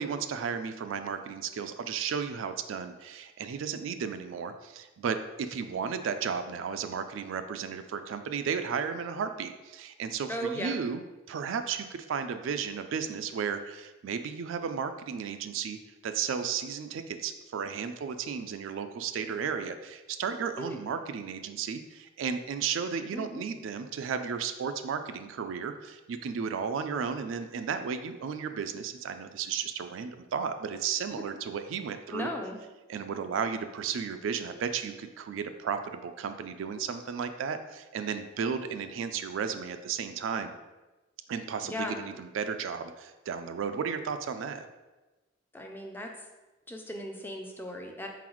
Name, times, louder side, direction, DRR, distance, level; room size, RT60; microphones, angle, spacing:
voice 1, 0.0-32.3 32.9-40.6 41.3-44.7, right 6 dB, 75° right, 9 dB, 0.3 m, -34 dB
voice 2, 10.3-10.8 20.6-20.8 23.1-23.5 32.1-32.6 41.6-42.0 45.5-46.1 46.7-48.1, equal, 10° left, 2 dB, 0.4 m, -36 dB
4.1 x 3.9 x 3.0 m, 1.1 s
head